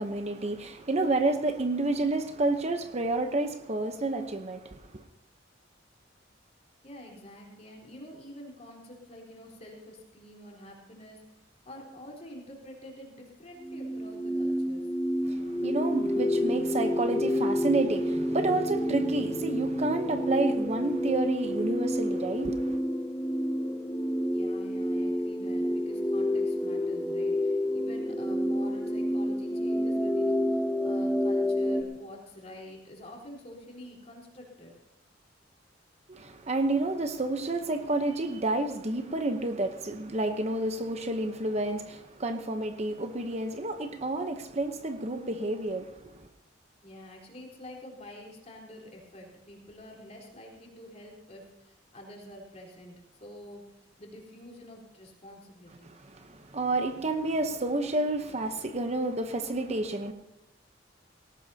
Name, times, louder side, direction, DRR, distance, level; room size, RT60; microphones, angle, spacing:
voice 1, 0.0-5.0 15.3-22.8 36.1-46.3 56.1-60.1, right 2 dB, 35° right, 0.9 m, -30 dB
voice 2, 6.8-11.4 11.6-14.9 24.3-34.7 46.8-55.9, left 1 dB, 35° left, 3.9 m, -47 dB
sound 1, 13.6-31.8, equal, 5° left, 1.0 m, -29 dB
18.5 x 18.0 x 2.8 m
head